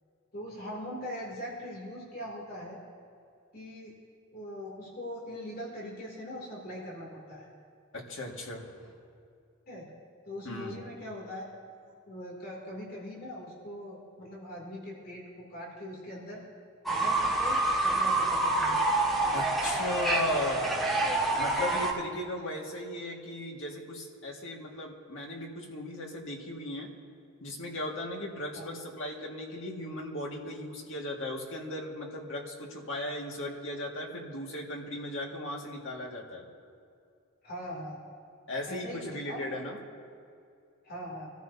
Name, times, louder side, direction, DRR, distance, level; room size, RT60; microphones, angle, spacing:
voice 1, 0.3-2.8 3.5-4.0 4.3-7.5 9.7-9.9 10.2-11.5 11.9-16.4 16.9-18.8 22.3-22.5 28.6-28.7 37.4-38.0 38.7-39.4 40.8-41.3, left 1 dB, 45° left, -4 dB, 2.8 m, -41 dB
voice 2, 7.9-8.9 10.4-10.8 19.3-20.9 21.4-26.9 27.4-36.4 38.5-39.8, left 1 dB, 65° left, 0 dB, 2.0 m, -37 dB
Fowl / Bird, 16.9-21.9, right 2 dB, ahead, 1.6 m, -27 dB
25.0 x 14.5 x 2.8 m, 2.4 s
head